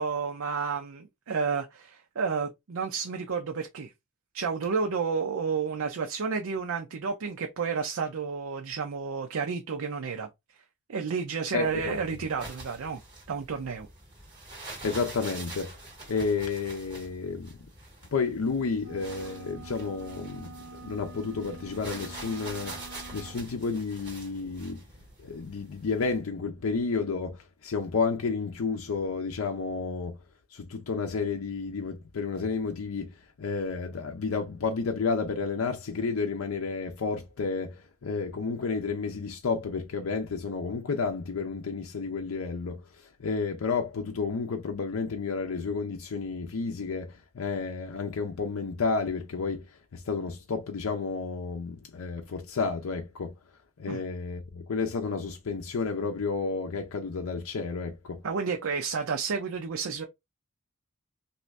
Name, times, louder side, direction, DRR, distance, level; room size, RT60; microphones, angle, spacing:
voice 1, 0.0-3.9 4.3-10.3 10.9-13.0 13.3-13.9 53.9-54.0 58.2-60.0, right 5 dB, 75° right, 0.5 m, -31 dB
voice 2, 11.5-12.0 14.8-15.8 16.1-17.6 18.1-22.8 23.1-24.8 25.2-30.2 30.5-42.8 43.2-49.7 49.9-53.3 53.8-58.2, left 4 dB, 85° left, 0.5 m, -31 dB
sound 1, 11.6-26.2, right 2 dB, 20° right, 1.7 m, -45 dB
sound 2, 18.8-23.4, right 3 dB, 55° right, 0.8 m, -47 dB
2.7 x 2.5 x 3.1 m
head